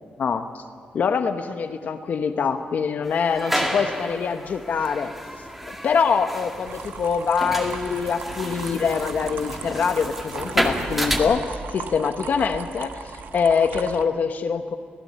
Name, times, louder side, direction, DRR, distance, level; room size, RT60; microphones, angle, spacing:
voice 1, 0.2-0.6 0.9-5.1 5.8-14.8, left 6 dB, 60° left, 7 dB, 1.0 m, -24 dB
sound 1, 3.0-11.2, equal, 5° right, 2.1 m, -30 dB
sound 2, 6.7-14.0, right 6 dB, 80° right, 1.1 m, -37 dB
25.5 x 16.0 x 8.7 m, 2.1 s
wide cardioid pair, 140°, 3 cm